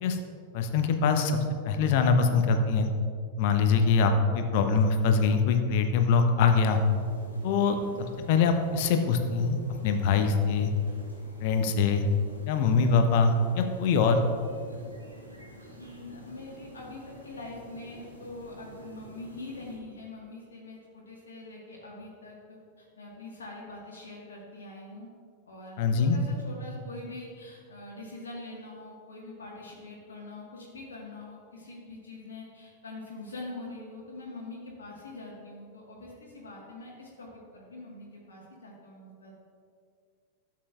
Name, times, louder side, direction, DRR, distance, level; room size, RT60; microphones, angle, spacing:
voice 1, 0.5-1.4 1.6-2.9 3.4-6.8 7.4-7.8 8.3-10.7 11.4-12.0 12.5-14.2 25.8-26.2, left 5 dB, 50° left, 6 dB, 0.8 m, -23 dB
sound 1, 6.6-19.8, equal, 85° right, 2.2 m, -49 dB
voice 2, 15.8-25.1 25.5-39.3, left 2 dB, 70° left, -4 dB, 1.5 m, -44 dB
12.5 x 7.5 x 2.4 m, 2.2 s
figure-of-eight pair, 90°, 0 cm